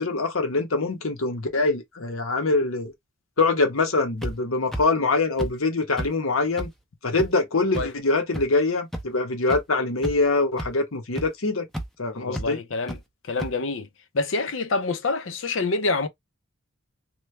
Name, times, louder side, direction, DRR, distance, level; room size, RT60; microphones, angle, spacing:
voice 1, 0.0-2.9 3.4-6.7 7.0-11.7 12.0-12.6, left 3 dB, 80° left, 1.0 m, -24 dB
sound 1, 4.2-4.3 4.7-4.8 5.4-5.5 6.0-6.1 6.6-6.7 7.2-7.3 7.7-7.8 8.3-8.4 8.9-9.0 9.5-9.6 10.0-10.3 10.6-10.7 11.2-11.3 11.7-11.9 12.3-12.5 12.9-13.0 13.4-13.5, right 1 dB, ahead, 0.6 m, -30 dB
voice 2, 12.3-13.0 13.3-13.9 14.1-16.1, left 3 dB, 65° left, 0.6 m, -26 dB
3.2 x 2.2 x 3.2 m
head